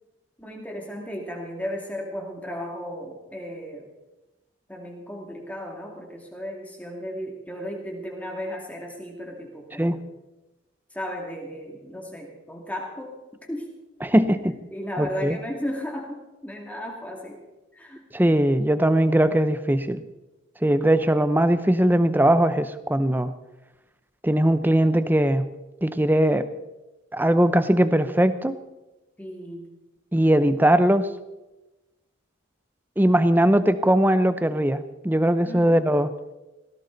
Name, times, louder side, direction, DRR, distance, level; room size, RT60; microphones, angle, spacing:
voice 1, 0.4-3.9 4.7-10.0 10.9-13.1 13.5-13.7 14.7-17.4 17.7-18.0 29.2-29.7 35.4-35.8, equal, 5° left, 0 dB, 2.3 m, -35 dB
voice 2, 14.0-14.6 15.0-15.4 18.1-20.0 20.6-23.3 24.2-25.5 25.8-26.5 27.1-28.6 30.1-31.1 33.0-36.1, right 1 dB, 10° right, 12 dB, 0.6 m, -20 dB
18.5 x 16.0 x 4.0 m, 1.0 s
head